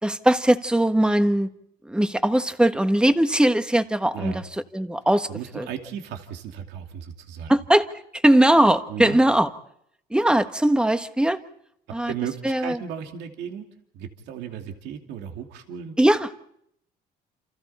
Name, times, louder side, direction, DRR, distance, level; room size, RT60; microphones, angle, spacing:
voice 1, 0.0-1.5 1.8-4.3 4.7-5.3 5.5-5.7 7.5-7.9 8.1-9.5 10.1-11.4 11.9-12.1 12.4-12.8 16.0-16.3, right 1 dB, 5° right, 9 dB, 1.4 m, -20 dB
voice 2, 4.1-4.4 5.3-7.5 8.9-9.2 11.9-13.7 13.9-15.9, right 8 dB, 85° right, 3 dB, 2.7 m, -35 dB
29.0 x 27.5 x 4.3 m, 0.72 s
cardioid pair, 110°, 17 cm